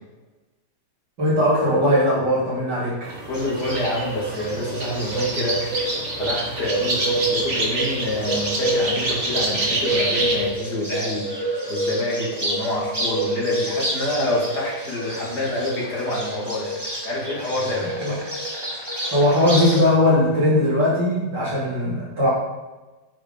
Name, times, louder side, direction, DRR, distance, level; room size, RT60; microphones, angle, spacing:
voice 1, 1.2-3.1 18.0-18.2 19.1-22.3, left 1 dB, 75° right, -8 dB, 3.6 m, -19 dB
sound 1, 3.0-10.5, right 2 dB, 40° right, 2.0 m, -27 dB
voice 2, 3.3-17.9, left 1 dB, 65° left, -3 dB, 3.0 m, -27 dB
Bird, 3.3-19.8, right 1 dB, 15° right, 1.4 m, -28 dB
9.5 x 4.9 x 5.3 m, 1.2 s
omnidirectional pair, 1.9 m